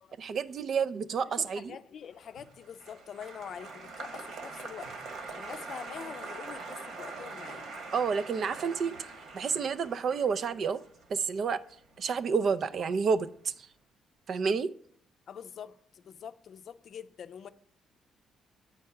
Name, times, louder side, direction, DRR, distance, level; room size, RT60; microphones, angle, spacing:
voice 1, 0.2-1.8 7.9-9.1 9.3-10.8 11.1-11.6 12.0-13.5 14.3-14.7, right 5 dB, 55° right, 0.4 m, -29 dB
voice 2, 1.2-4.9 5.3-7.7 15.3-17.5, left 8 dB, 60° left, 0.5 m, -45 dB
Applause, 2.2-12.6 12.9-13.5, right 3 dB, 70° right, 1.6 m, -44 dB
8.5 x 4.5 x 5.7 m
cardioid pair, 90°, 0 cm